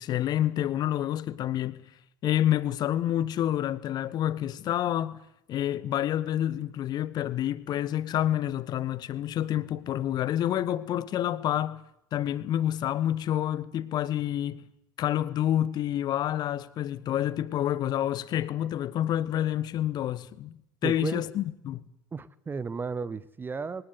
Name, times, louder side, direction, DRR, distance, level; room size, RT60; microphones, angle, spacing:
voice 1, 0.0-1.8 2.2-5.2 5.5-11.8 12.1-14.6 15.0-21.8, left 11 dB, 35° left, 1.3 m, -28 dB
voice 2, 20.8-21.3 22.1-23.8, right 5 dB, 20° right, 0.9 m, -34 dB
22.5 x 18.5 x 8.1 m
figure-of-eight pair, 75°, 11 cm